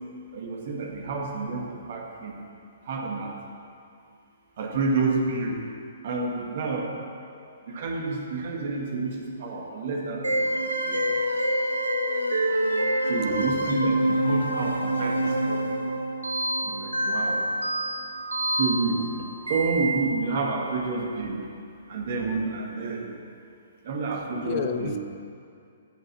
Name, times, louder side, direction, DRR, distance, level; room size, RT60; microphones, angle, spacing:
voice 1, 0.3-1.6 1.9-2.3 2.9-3.3 4.6-5.6 6.0-6.9 7.7-9.2 9.4-10.4 10.9-11.0 13.1-15.6 16.6-17.4 18.6-19.1 19.5-21.4 21.9-23.0 23.9-24.9, right 4 dB, 50° right, 1 dB, 1.7 m, -29 dB
sound 1, 10.2-20.4, right 1 dB, 85° right, 1.1 m, -26 dB
voice 2, 13.3-13.7 24.4-25.0, left 9 dB, 35° left, 9 dB, 0.5 m, -32 dB
15.5 x 5.6 x 5.9 m, 2.4 s
figure-of-eight pair, 120°, 0 cm